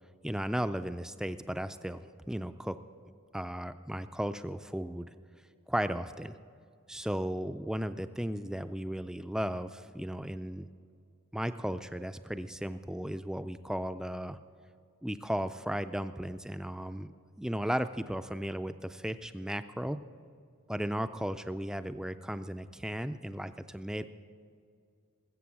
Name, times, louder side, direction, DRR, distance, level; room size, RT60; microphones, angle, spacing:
voice 1, 0.2-2.0 2.3-2.8 3.3-5.1 5.7-6.4 6.9-10.7 11.3-14.4 15.0-17.1 17.4-20.0 20.7-24.0, equal, 5° right, 10 dB, 0.3 m, -35 dB
20.5 x 8.2 x 7.1 m, 2.4 s
head